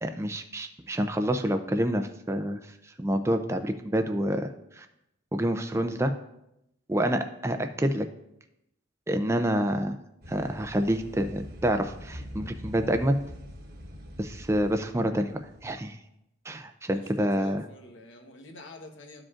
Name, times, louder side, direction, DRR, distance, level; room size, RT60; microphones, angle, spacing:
voice 1, 0.0-2.6 3.0-4.5 4.8-4.9 5.3-6.1 6.9-8.1 9.1-10.0 10.3-13.2 14.2-15.3 15.6-16.0 16.5-17.6, equal, 15° right, 7 dB, 0.4 m, -27 dB
sound 1, 10.2-15.7, equal, 45° right, 1.1 m, -44 dB
voice 2, 16.9-19.2, left 2 dB, 60° left, 3 dB, 1.1 m, -47 dB
13.5 x 5.0 x 2.5 m, 0.83 s
head